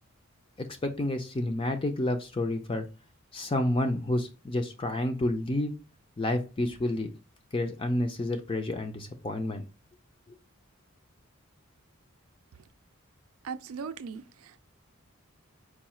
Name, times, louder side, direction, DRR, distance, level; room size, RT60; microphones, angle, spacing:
voice 1, 0.6-2.9 3.3-5.8 6.2-7.1 7.5-9.6, left 1 dB, 25° left, 0.4 m, -29 dB
voice 2, 13.4-14.6, right 5 dB, 85° right, 0.4 m, -39 dB
4.7 x 2.3 x 4.2 m
head